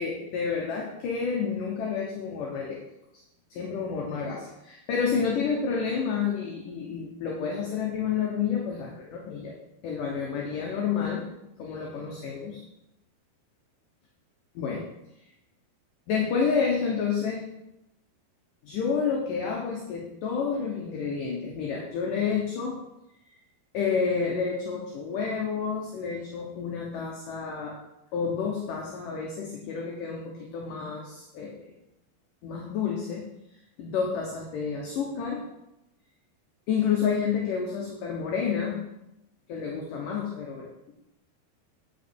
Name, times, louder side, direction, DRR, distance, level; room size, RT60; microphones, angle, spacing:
voice 1, 0.0-2.8 3.5-9.5 9.8-11.2 11.6-12.6 14.6-14.8 16.1-17.4 18.6-22.8 23.7-27.8 28.1-31.7 32.4-33.3 33.8-35.4 36.7-38.8 39.5-40.9, left 6 dB, 70° left, -1 dB, 2.1 m, -29 dB
9.2 x 6.4 x 4.5 m, 0.87 s
omnidirectional pair, 5.0 m